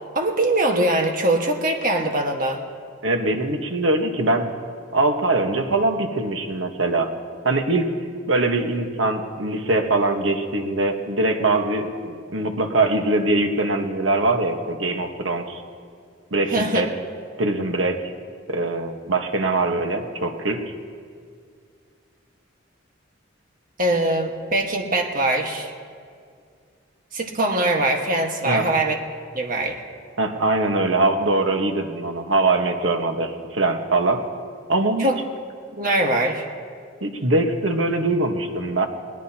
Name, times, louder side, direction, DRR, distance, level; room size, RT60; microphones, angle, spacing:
voice 1, 0.1-2.6 16.5-16.8 23.8-25.7 27.1-29.0 29.3-29.7 35.0-35.2 35.8-36.4, right 1 dB, 45° right, 2 dB, 1.6 m, -22 dB
voice 2, 3.0-4.5 4.9-7.1 7.4-7.9 8.3-15.6 16.3-16.9 17.4-18.0 18.5-20.6 28.4-28.7 30.2-34.2 34.7-35.1 37.0-38.9, right 2 dB, 80° right, 4 dB, 1.4 m, -22 dB
21.0 x 19.0 x 2.9 m, 2.2 s
head